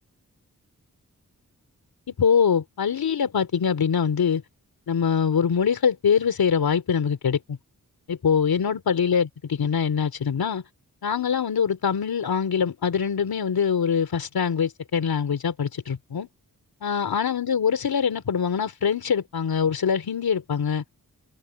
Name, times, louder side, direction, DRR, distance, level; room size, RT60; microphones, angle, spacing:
voice 1, 2.2-4.4 4.9-7.6 8.1-10.6 11.0-16.3 16.8-20.8, left 7 dB, 85° left, 3.2 m, -23 dB
open air
cardioid pair, 55°, 35 cm